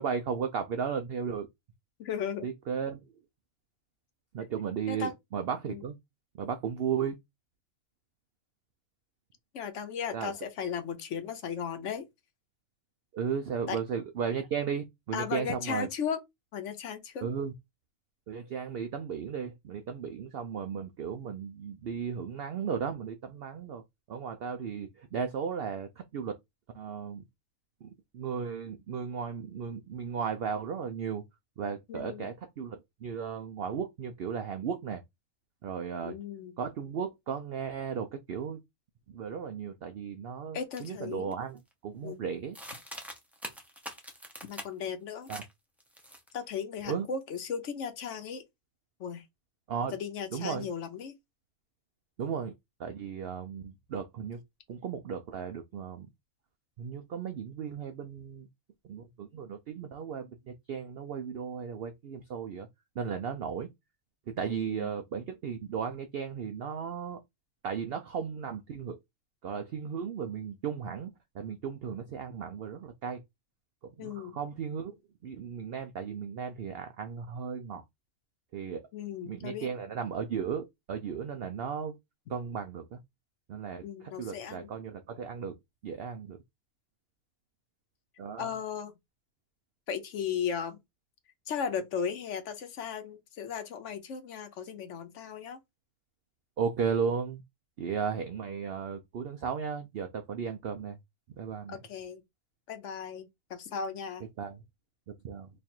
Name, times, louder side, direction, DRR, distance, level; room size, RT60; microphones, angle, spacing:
voice 1, 0.0-1.5 2.4-3.0 4.3-5.9 6.4-7.2 10.1-10.3 13.1-15.9 17.2-17.5 18.3-23.8 24.1-26.4 26.7-27.2 27.8-31.2 31.6-35.0 35.6-36.1 36.6-38.6 39.1-42.6 45.3-45.4 46.8-47.1 49.7-49.9 50.3-50.7 52.2-52.5 52.8-54.4 54.7-56.1 56.8-58.5 58.8-60.3 60.7-62.7 63.0-63.7 64.4-67.2 67.6-69.0 69.4-73.2 74.0-75.0 75.2-77.8 78.5-78.8 79.2-81.9 82.3-83.0 83.5-85.5 85.8-86.4 88.2-88.5 96.6-97.4 97.8-101.0 101.4-101.8 104.4-104.6 105.2-105.5, right 7 dB, 70° right, 0.5 m, -35 dB
voice 2, 2.0-2.5 4.9-5.1 5.6-5.8 9.5-12.0 13.7-13.8 15.1-16.2 16.5-17.3 31.9-32.3 36.0-36.5 40.5-41.4 42.0-42.3 44.5-45.3 46.3-48.4 49.0-49.2 49.9-51.1 64.5-64.9 74.0-74.4 78.9-79.7 83.8-84.7 88.4-88.9 89.9-90.8 91.5-95.6 101.7-102.2 102.7-104.2, left 7 dB, 65° left, 0.9 m, -36 dB
sound 1, 40.8-40.9 41.3-41.7 42.5-44.9 45.3-45.5 45.8-46.5, equal, ahead, 0.4 m, -44 dB
3.1 x 2.4 x 4.2 m
omnidirectional pair, 1.5 m